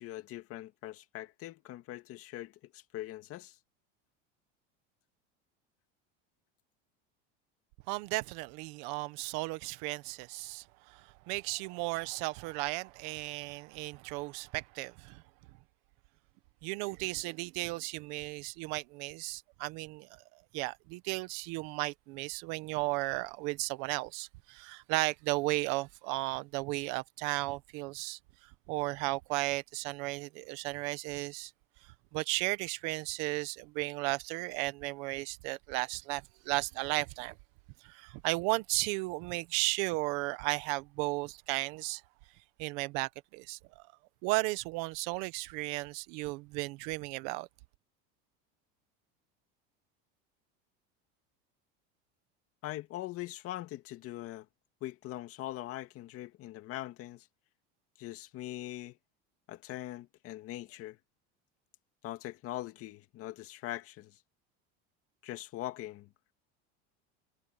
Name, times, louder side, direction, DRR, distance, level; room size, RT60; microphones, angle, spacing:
voice 1, 0.0-3.6 52.6-54.5 54.8-57.3 58.0-59.0 59.5-61.0 62.0-64.2 65.2-66.3, left 15 dB, 50° left, 2.2 m, -42 dB
voice 2, 7.9-15.2 16.6-28.2 28.7-31.5 32.1-37.3 37.8-42.0 42.6-43.8 44.2-47.5, right 23 dB, 65° right, 1.4 m, -35 dB
supercardioid pair, 140°, 31 cm